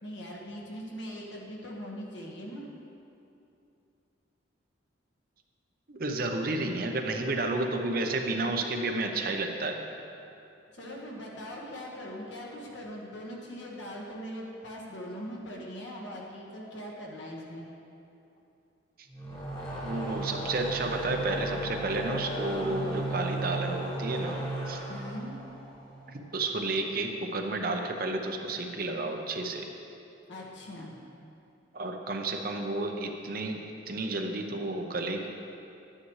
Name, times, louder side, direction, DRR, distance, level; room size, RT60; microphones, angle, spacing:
voice 1, 0.0-2.7 10.7-17.6 24.9-25.4 30.3-31.0, equal, 70° left, -3 dB, 1.6 m, -41 dB
voice 2, 5.9-9.8 19.8-24.4 24.7-24.8 26.1-29.7 31.7-33.6 33.9-35.3, right 2 dB, 50° right, 4 dB, 0.7 m, -31 dB
sound 1, 19.1-26.5, right 1 dB, 20° left, 1.3 m, -35 dB
11.0 x 9.8 x 3.2 m, 2.7 s
head